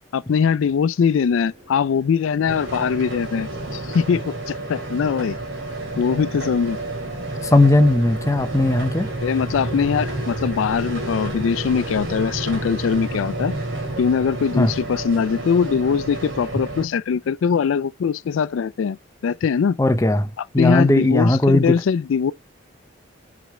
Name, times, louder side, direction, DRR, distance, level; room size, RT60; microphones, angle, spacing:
voice 1, 0.1-5.4 6.0-6.8 9.2-13.5 14.0-19.0 19.2-19.8 20.6-22.3, left 6 dB, 80° left, 0.3 m, -21 dB
sound 1, 1.0-11.6, equal, 30° right, 3.3 m, -49 dB
sound 2, 2.5-16.8, right 2 dB, 80° right, 2.8 m, -30 dB
voice 2, 7.4-9.1 14.6-14.7 19.8-21.8, left 1 dB, 15° left, 0.6 m, -18 dB
6.1 x 4.9 x 4.2 m
head